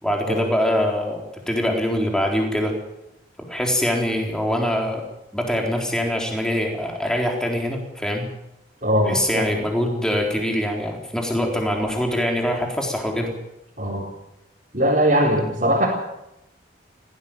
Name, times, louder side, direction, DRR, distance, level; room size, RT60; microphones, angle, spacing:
voice 1, 0.0-2.8 3.4-5.0 5.3-8.3 9.1-13.3, equal, 5° left, 1 dB, 4.0 m, -23 dB
voice 2, 8.8-9.4 13.8-14.0 14.7-15.9, equal, 40° right, -5 dB, 4.6 m, -20 dB
18.0 x 16.5 x 9.1 m, 0.89 s
head